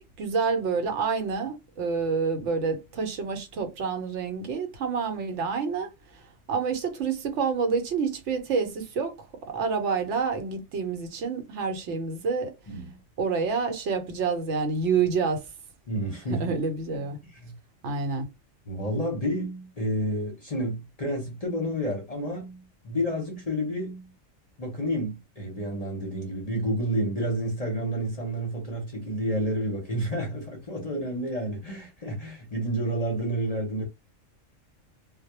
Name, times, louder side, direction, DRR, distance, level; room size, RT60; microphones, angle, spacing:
voice 1, 0.0-6.2 6.5-9.2 9.5-12.5 13.2-15.5 16.3-17.2 17.8-18.3, right 5 dB, 70° right, 1.0 m, -28 dB
voice 2, 12.7-13.0 15.9-16.5 16.9-17.5 18.7-24.1 24.6-33.8, equal, 40° left, 0.7 m, -30 dB
2.3 x 2.1 x 2.8 m
omnidirectional pair, 1.3 m